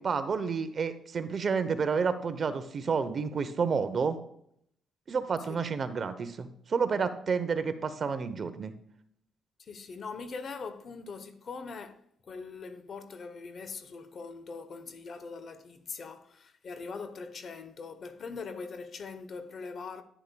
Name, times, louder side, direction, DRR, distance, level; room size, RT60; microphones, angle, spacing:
voice 1, 0.0-4.2 5.1-8.7, right 5 dB, 45° right, 0.8 m, -30 dB
voice 2, 9.6-20.0, left 4 dB, 50° left, 0.9 m, -42 dB
10.0 x 9.8 x 2.3 m
cardioid pair, 90°, 0 cm